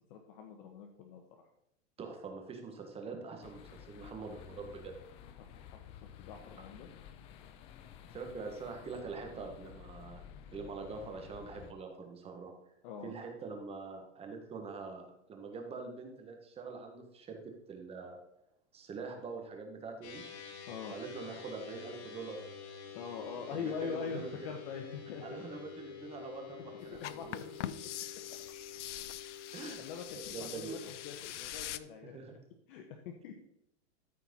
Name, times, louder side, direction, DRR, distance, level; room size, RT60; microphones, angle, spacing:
voice 1, 0.1-1.2 5.4-5.6 6.2-6.9 12.8-13.1 20.7-20.9 22.9-25.2 26.7-27.7 29.6-32.2 32.7-33.3, left 6 dB, 50° left, 4 dB, 1.3 m, -43 dB
voice 2, 2.0-5.0 8.1-10.2 10.5-12.5 13.0-17.4 17.7-18.2 18.7-20.2 20.9-22.4 23.5-24.5 25.2-27.4 29.5-29.8 30.3-30.8 32.1-32.3, right 4 dB, 15° right, 3 dB, 1.6 m, -44 dB
sound 1, 3.4-11.7, left 9 dB, 15° left, 0.3 m, -53 dB
sound 2, 20.0-31.1, left 7 dB, 65° left, 3.0 m, -49 dB
sound 3, 27.0-31.8, left 12 dB, 85° left, 0.7 m, -43 dB
13.5 x 4.6 x 5.5 m, 0.79 s
supercardioid pair, 155°, 35 cm